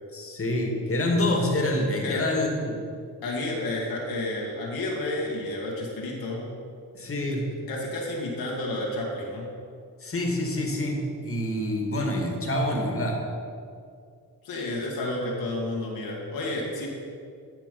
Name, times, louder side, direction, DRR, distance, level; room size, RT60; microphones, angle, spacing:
voice 1, 0.1-2.8 6.9-7.5 10.0-13.2, left 1 dB, 35° left, 1 dB, 2.2 m, -26 dB
voice 2, 3.2-6.4 7.7-9.5 14.4-16.9, left 2 dB, 70° left, -3 dB, 2.1 m, -31 dB
13.0 x 5.1 x 5.4 m, 2.3 s
cardioid pair, 70°, 37 cm